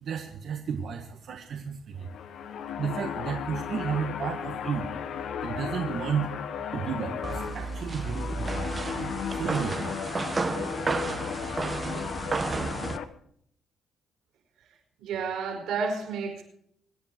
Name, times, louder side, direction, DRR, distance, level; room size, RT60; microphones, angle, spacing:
voice 1, 0.0-2.1 2.8-4.9 5.4-6.3 6.7-9.9, right 7 dB, 65° right, 1.8 m, -33 dB
sound 1, 1.9-13.0, left 8 dB, 70° left, 1.1 m, -35 dB
sound 2, 7.2-13.0, right 3 dB, 30° right, 1.2 m, -32 dB
voice 2, 15.0-16.4, right 5 dB, 85° right, 5.0 m, -31 dB
25.5 x 9.3 x 4.7 m
cardioid pair, 90°, 0 cm